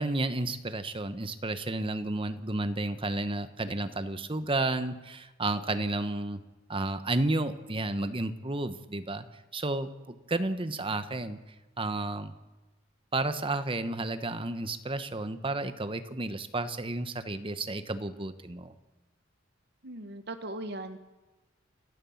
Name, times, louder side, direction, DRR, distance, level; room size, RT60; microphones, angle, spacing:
voice 1, 0.0-6.4 6.7-9.2 9.5-11.4 11.8-12.3 13.1-18.7, right 2 dB, 30° right, 10 dB, 1.1 m, -32 dB
voice 2, 19.8-21.0, right 1 dB, 60° right, 8 dB, 1.3 m, -39 dB
30.0 x 13.0 x 7.3 m, 1.1 s
head